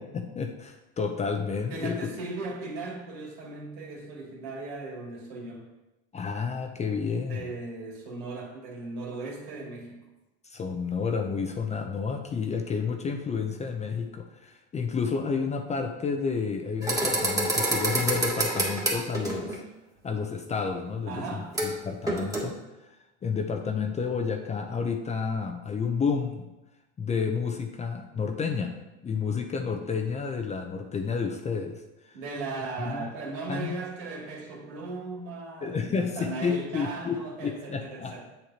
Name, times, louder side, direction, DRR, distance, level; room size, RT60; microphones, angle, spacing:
voice 1, 0.0-2.0 6.1-7.5 10.4-19.6 20.0-22.5 23.2-26.5 27.0-28.7 29.0-32.1 32.8-33.1 33.5-33.7 35.6-37.2 37.4-38.3, left 5 dB, 20° left, 5 dB, 0.6 m, -30 dB
voice 2, 1.7-5.7 7.3-10.0 21.1-21.5 32.1-38.3, right 3 dB, 70° right, -2 dB, 2.8 m, -37 dB
sound 1, 16.8-19.6 21.5-21.7 22.0-22.4, right 1 dB, 10° right, 1.9 m, -27 dB
7.9 x 7.2 x 2.9 m, 1.0 s
supercardioid pair, 105°, 34 cm